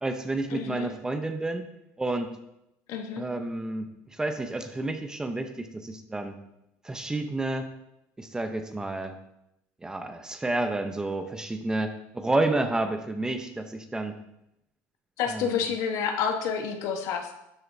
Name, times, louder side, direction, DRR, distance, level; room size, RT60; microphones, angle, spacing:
voice 1, 0.0-1.6 2.0-2.4 3.2-6.3 6.8-7.7 8.2-9.2 9.8-14.1 15.3-15.6, right 2 dB, 10° right, 7 dB, 0.8 m, -30 dB
voice 2, 0.5-0.9 2.9-3.2 15.2-17.3, left 7 dB, 60° left, 5 dB, 1.2 m, -29 dB
12.5 x 7.7 x 2.7 m, 0.85 s
supercardioid pair, 120°, 6 cm